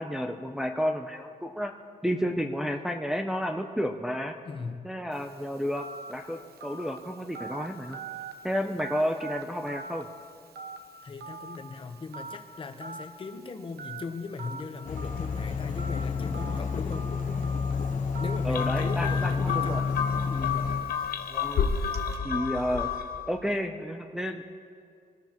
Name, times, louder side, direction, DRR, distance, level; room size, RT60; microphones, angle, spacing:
voice 1, 0.0-1.7 2.0-4.4 4.8-8.0 8.4-10.1 18.4-19.8 21.3-21.7 22.2-22.9 23.3-24.5, equal, 5° right, 2 dB, 0.5 m, -31 dB
voice 2, 4.4-4.9 11.0-17.1 18.2-19.9 20.3-20.7, left 4 dB, 35° left, 7 dB, 0.9 m, -38 dB
Telephone, 5.1-22.2, right 4 dB, 85° right, 1.1 m, -44 dB
sound 1, 14.8-20.8, left 5 dB, 50° left, 1.2 m, -29 dB
sound 2, 18.5-23.3, left 7 dB, 70° left, 0.9 m, -31 dB
25.5 x 18.0 x 3.0 m, 2.3 s
wide cardioid pair, 180°, 16 cm